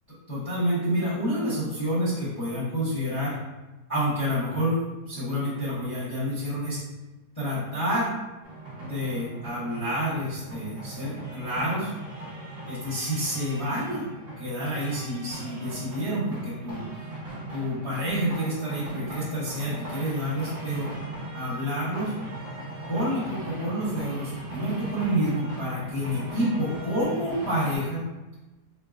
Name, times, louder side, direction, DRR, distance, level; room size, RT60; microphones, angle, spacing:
voice 1, 0.3-3.4 3.9-4.8 5.1-6.8 7.3-8.1 8.8-11.9 12.7-14.1 14.4-17.1 17.5-20.9 21.3-22.1 22.9-28.1, equal, 25° left, -11 dB, 0.9 m, -28 dB
sound 1, 8.4-27.8, right 2 dB, 35° right, 1.1 m, -39 dB
4.5 x 2.1 x 2.5 m, 1.1 s
omnidirectional pair, 1.9 m